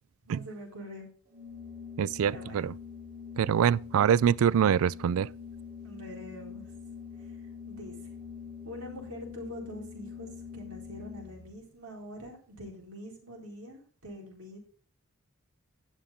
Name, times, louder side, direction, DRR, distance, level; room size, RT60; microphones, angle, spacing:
voice 1, 0.3-1.1 2.2-2.7 5.8-6.7 7.7-7.9 8.6-14.6, equal, 85° right, 4.4 m, -44 dB
Organ, 1.3-11.5, left 6 dB, 40° right, 3.7 m, -44 dB
voice 2, 2.0-2.7 3.4-5.3, right 8 dB, 65° right, 0.3 m, -24 dB
11.0 x 7.5 x 3.7 m
head